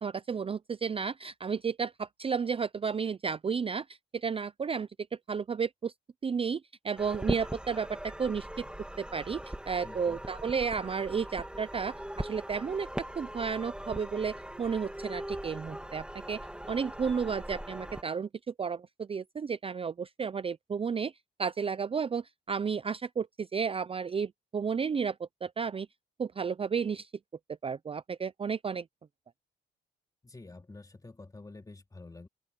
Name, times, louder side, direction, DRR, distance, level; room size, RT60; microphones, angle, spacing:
voice 1, 0.0-4.9 5.3-5.9 6.2-8.6 9.0-12.9 13.2-16.4 16.7-18.3 18.6-21.1 21.4-25.9 26.2-27.1 27.6-28.8, right 6 dB, 30° right, 0.5 m, -32 dB
sound 1, 7.0-18.0, right 1 dB, 5° right, 2.2 m, -40 dB
voice 2, 9.8-10.3 30.2-32.3, left 3 dB, 20° left, 2.7 m, -49 dB
open air
cardioid pair, 90°, 20 cm